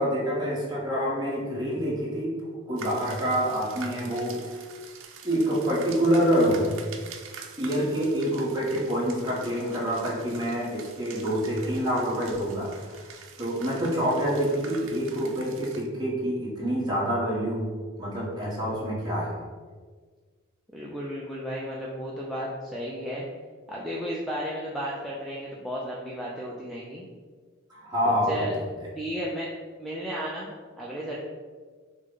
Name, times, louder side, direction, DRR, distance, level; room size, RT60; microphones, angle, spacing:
voice 1, 0.0-2.4 2.7-4.6 5.2-6.8 7.6-19.3 27.7-28.5, equal, 20° right, -5 dB, 1.2 m, -27 dB
sound 1, 2.8-15.9, right 6 dB, 70° right, 0.5 m, -45 dB
voice 2, 20.7-23.2 23.7-27.0 28.0-28.5 28.9-29.5 29.8-31.2, equal, ahead, -5 dB, 0.4 m, -34 dB
6.2 x 2.2 x 3.8 m, 1.5 s
head